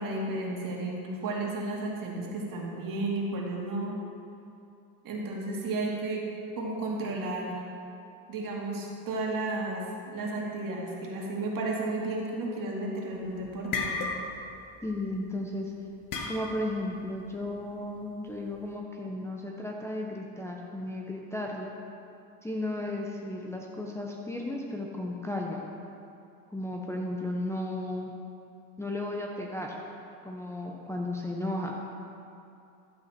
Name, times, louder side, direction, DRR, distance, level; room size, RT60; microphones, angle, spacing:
voice 1, 0.0-3.9 5.0-6.3 6.6-7.6 8.3-14.1, right 2 dB, 50° right, -2 dB, 2.4 m, -33 dB
sound 1, 13.1-15.1 16.1-16.8, left 4 dB, 50° left, 1.4 m, -33 dB
voice 2, 14.8-15.7 16.3-21.7 22.4-25.6 26.5-28.1 28.8-29.8 30.2-31.8, left 1 dB, 5° left, -2 dB, 0.9 m, -34 dB
12.0 x 7.9 x 4.4 m, 2.6 s
cardioid pair, 110°, 42 cm